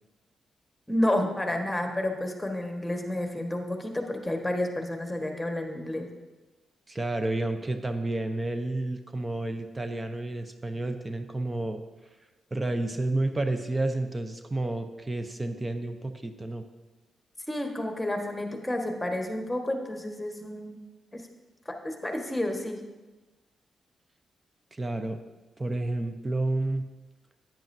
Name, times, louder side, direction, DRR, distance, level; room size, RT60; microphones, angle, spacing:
voice 1, 0.9-6.1 17.5-20.8 21.1-21.2 21.6-22.8, left 1 dB, 10° left, 3 dB, 1.5 m, -30 dB
voice 2, 6.9-11.8 12.5-16.6 24.7-25.2 25.6-26.8, right 2 dB, 25° right, 7 dB, 0.7 m, -30 dB
10.0 x 9.1 x 2.7 m, 1.2 s
supercardioid pair, 55°, 0 cm